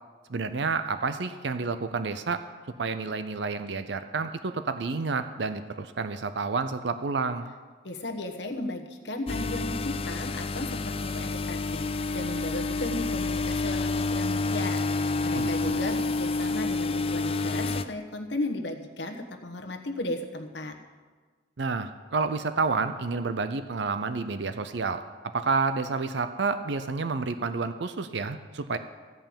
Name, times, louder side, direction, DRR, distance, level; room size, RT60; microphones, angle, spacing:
voice 1, 0.3-2.4 2.8-7.5 15.4-15.8 21.6-25.0 25.3-28.8, right 4 dB, 70° right, 10 dB, 0.6 m, -29 dB
voice 2, 7.8-20.8, left 1 dB, 65° left, 5 dB, 1.3 m, -35 dB
sound 1, 9.3-17.8, left 3 dB, 30° left, 0.4 m, -29 dB
15.0 x 5.6 x 8.8 m, 1.4 s
head